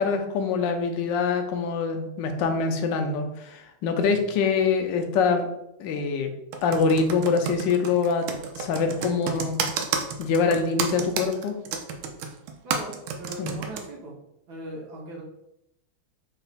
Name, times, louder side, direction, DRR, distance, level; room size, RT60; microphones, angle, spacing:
voice 1, 0.0-5.5 5.8-6.3 6.6-8.3 8.6-9.6 10.2-11.6 13.4-13.5, left 5 dB, 75° left, 6 dB, 1.1 m, -24 dB
Computer keyboard, 6.5-13.8, right 6 dB, 90° right, 1.4 m, -30 dB
voice 2, 12.6-14.2 14.5-15.2, right 1 dB, 65° right, -1 dB, 1.1 m, -39 dB
3.9 x 2.2 x 3.9 m, 0.81 s
omnidirectional pair, 2.3 m